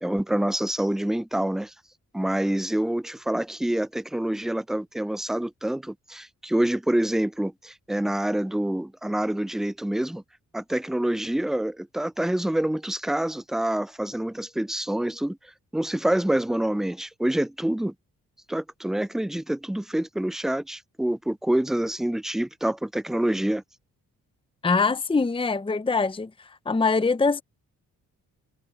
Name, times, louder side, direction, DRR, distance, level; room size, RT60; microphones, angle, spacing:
voice 1, 0.0-1.7 2.1-10.2 10.5-17.9 18.5-23.6, right 1 dB, ahead, 0.3 m, -27 dB
voice 2, 24.6-26.3 26.7-27.4, left 4 dB, 15° left, 0.8 m, -23 dB
supercardioid pair, 60°, 34 cm